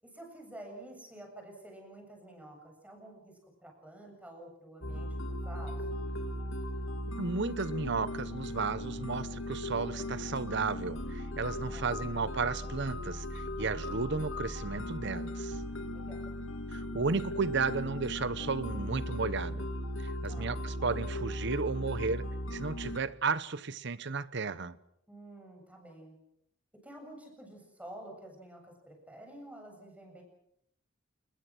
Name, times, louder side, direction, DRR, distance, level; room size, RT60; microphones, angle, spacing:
voice 1, 0.0-6.2 11.7-12.2 15.9-16.3 20.2-20.6 25.1-26.1 26.7-30.2, right 1 dB, 5° right, 7.7 m, -50 dB
sound 1, 4.8-23.0, left 1 dB, 75° left, 3.0 m, -38 dB
voice 2, 7.2-15.6 16.7-19.7 20.0-24.8, right 4 dB, 60° right, 1.0 m, -34 dB
29.5 x 21.5 x 6.2 m
head